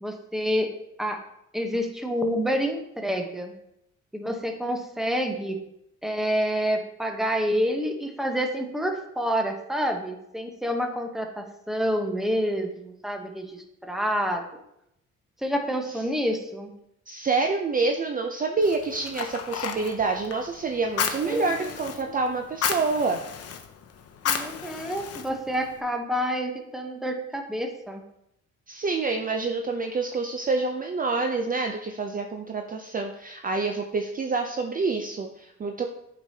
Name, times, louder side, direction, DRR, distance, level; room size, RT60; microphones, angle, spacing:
voice 1, 0.0-0.7 1.0-1.2 1.5-3.5 4.1-5.6 6.0-14.4 15.4-16.7 21.2-21.5 22.0-22.1 24.3-28.0, equal, ahead, 3 dB, 0.9 m, -28 dB
voice 2, 17.1-23.2 28.7-35.9, right 3 dB, 30° right, 4 dB, 0.5 m, -27 dB
Fire, 18.6-25.8, left 7 dB, 55° left, 0.8 m, -33 dB
8.0 x 5.1 x 2.8 m, 0.79 s
cardioid pair, 90°, 30 cm